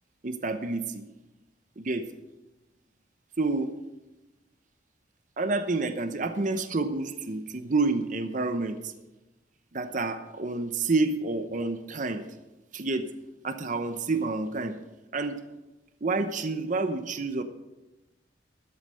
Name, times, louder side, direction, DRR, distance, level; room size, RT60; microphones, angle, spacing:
voice 1, 0.2-1.0 1.8-2.0 3.4-3.7 5.4-8.9 9.7-12.3 12.7-13.1 13.4-14.7 15.1-15.4 16.0-17.4, right 3 dB, 45° right, 9 dB, 0.9 m, -29 dB
13.5 x 8.0 x 6.4 m, 1.1 s
head